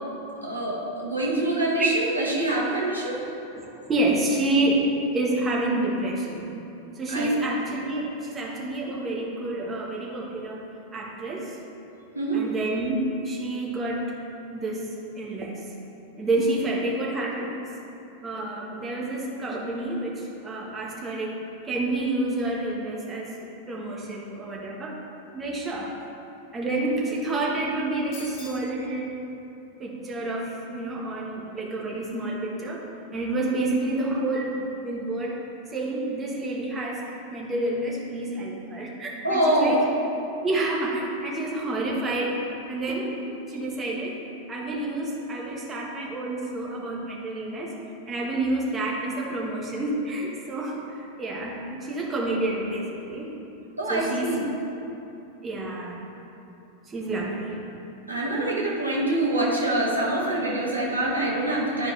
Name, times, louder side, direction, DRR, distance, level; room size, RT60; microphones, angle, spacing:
voice 1, 0.4-3.2 7.1-7.3 12.1-12.4 39.2-39.8 53.8-54.4 58.1-61.9, right 1 dB, 85° right, -4 dB, 1.4 m, -25 dB
voice 2, 3.6-4.9 5.1-6.5 6.9-10.7 10.9-11.6 12.3-14.1 14.5-14.8 15.1-15.5 16.2-17.6 18.2-21.4 21.6-23.4 23.7-24.9 25.3-25.9 26.5-29.2 29.8-32.8 33.1-35.4 35.7-39.8 40.4-44.2 44.5-47.7 48.1-53.3 53.9-54.4 55.4-56.0 56.8-57.6, right 2 dB, 20° right, -3 dB, 1.3 m, -29 dB
sound 1, 28.1-28.7, left 2 dB, 40° left, 1.6 m, -43 dB
11.0 x 4.6 x 3.2 m, 2.9 s
figure-of-eight pair, 90°, 0 cm